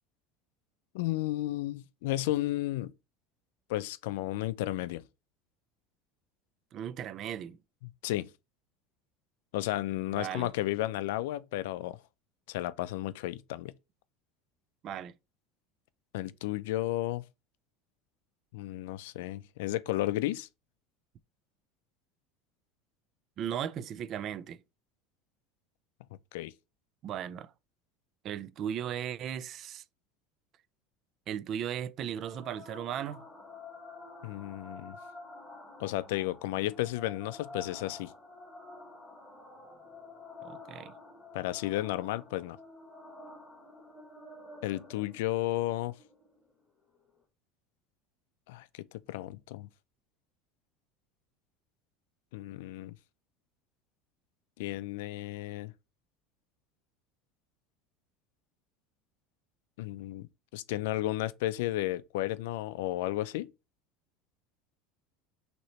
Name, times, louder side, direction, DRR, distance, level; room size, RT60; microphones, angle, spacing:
voice 1, 0.9-2.9 3.7-5.0 8.0-8.3 9.5-12.0 12.5-13.7 16.1-17.2 18.5-20.5 26.3-26.5 34.2-35.0 35.8-38.1 41.3-42.6 44.6-45.9 48.5-49.7 52.3-53.0 54.6-55.7 59.8-63.5, left 16 dB, 85° left, 0.4 m, -33 dB
voice 2, 6.7-7.6 10.1-10.5 14.8-15.1 23.4-24.6 27.0-27.5 28.2-29.8 31.3-33.3 40.4-40.9, right 9 dB, 35° right, 0.3 m, -37 dB
sound 1, 32.2-47.2, left 2 dB, 5° left, 1.4 m, -49 dB
6.2 x 2.9 x 2.9 m
cardioid pair, 170°, 0 cm